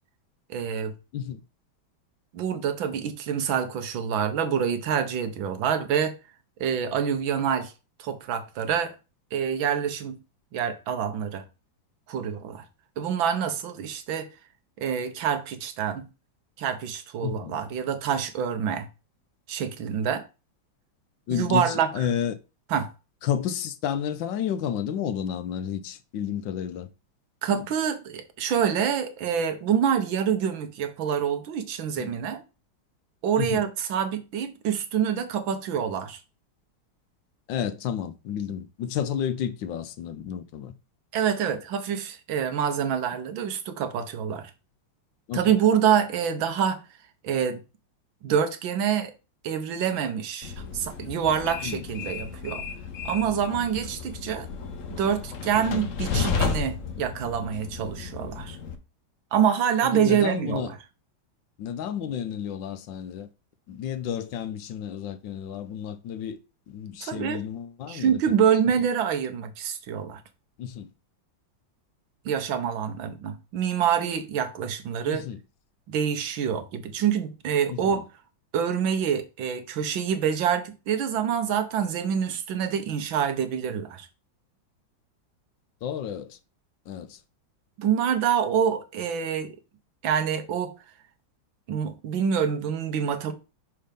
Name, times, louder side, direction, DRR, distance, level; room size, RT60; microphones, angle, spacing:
voice 1, 0.5-0.9 2.3-6.1 6.6-7.7 8.0-8.9 9.3-10.2 10.5-11.4 12.1-12.6 13.0-14.3 14.8-16.1 16.6-18.9 19.5-20.2 21.3-21.9 22.7-22.9 27.4-32.4 33.2-36.2 41.1-44.5 45.3-46.8 47.2-47.6 48.2-49.1 49.4-52.6 53.0-54.5 54.9-58.6 59.3-60.7 67.0-67.4 67.9-70.2 72.2-75.2 75.9-78.0 78.5-84.1 87.8-89.6 90.0-90.7 91.7-93.3, right 8 dB, 80° right, 1.7 m, -26 dB
voice 2, 17.2-17.6 21.3-22.4 23.2-26.9 27.5-27.7 32.0-32.1 33.4-33.6 37.5-40.7 45.3-45.6 51.6-51.9 59.8-60.7 61.6-63.3 63.7-66.4 66.7-68.2 70.6-70.9 75.1-75.4 77.7-78.0 85.8-86.4 86.9-87.2, left 9 dB, 75° left, 1.3 m, -31 dB
Train, 50.4-58.8, left 5 dB, 55° left, 0.9 m, -33 dB
5.8 x 4.3 x 5.1 m
omnidirectional pair, 2.1 m